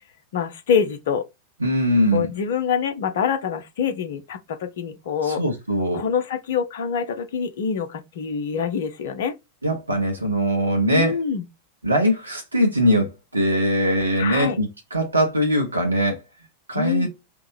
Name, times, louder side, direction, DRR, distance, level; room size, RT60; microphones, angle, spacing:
voice 1, 0.3-1.3 2.1-5.4 5.9-9.3 10.9-11.4 14.2-14.6 16.7-17.1, left 7 dB, 55° left, 0.6 m, -25 dB
voice 2, 1.6-2.3 5.2-6.0 9.6-11.1 11.8-16.2 16.7-17.1, equal, 80° right, 0.8 m, -21 dB
3.5 x 2.1 x 3.2 m
figure-of-eight pair, 90°, 0 cm